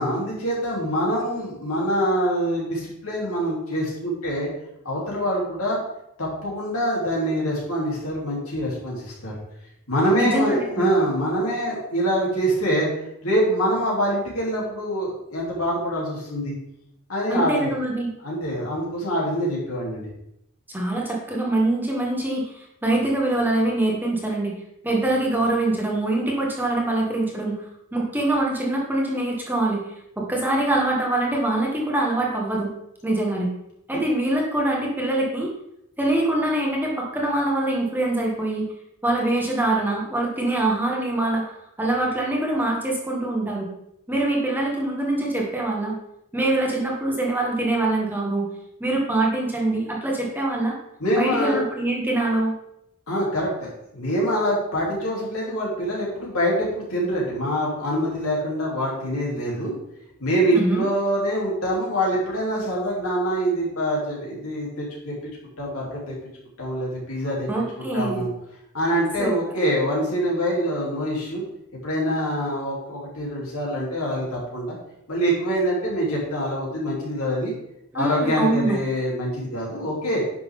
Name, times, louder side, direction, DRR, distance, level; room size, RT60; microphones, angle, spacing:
voice 1, 0.0-4.5 4.9-5.8 6.2-9.3 9.9-12.9 13.2-16.6 17.1-17.7 18.2-20.1 33.9-34.0 51.0-51.6 53.1-59.7 60.2-65.2 65.6-66.2 66.6-67.5 67.8-68.3 68.7-71.4 71.8-74.8 75.1-77.5 77.9-80.2, equal, 65° left, -4 dB, 3.4 m, -25 dB
voice 2, 10.1-10.9 17.3-18.1 20.7-24.5 24.8-32.7 33.0-33.5 33.9-35.5 36.0-38.7 39.0-41.4 41.8-43.7 44.1-45.9 46.3-48.5 48.8-50.7 51.1-52.5 60.5-60.8 67.5-68.2 69.2-69.3 77.9-78.8, right 2 dB, 10° right, -2 dB, 1.5 m, -24 dB
10.5 x 6.1 x 3.8 m, 0.80 s
head